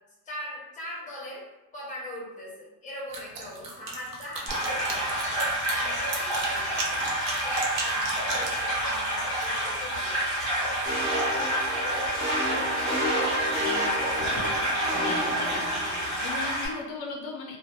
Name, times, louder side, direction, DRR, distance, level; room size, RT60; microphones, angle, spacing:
voice 1, 0.2-1.5 1.7-13.9, left 1 dB, 20° left, -4 dB, 0.6 m, -41 dB
sound 1, 3.1-8.6, right 3 dB, 60° right, 0.5 m, -35 dB
sound 2, 4.5-16.7, right 1 dB, ahead, 1.0 m, -28 dB
sound 3, 10.9-16.2, equal, 15° right, 0.7 m, -31 dB
voice 2, 14.9-17.6, left 4 dB, 70° left, 1 dB, 0.5 m, -38 dB
2.6 x 2.1 x 2.2 m, 0.99 s
cardioid pair, 170°, 39 cm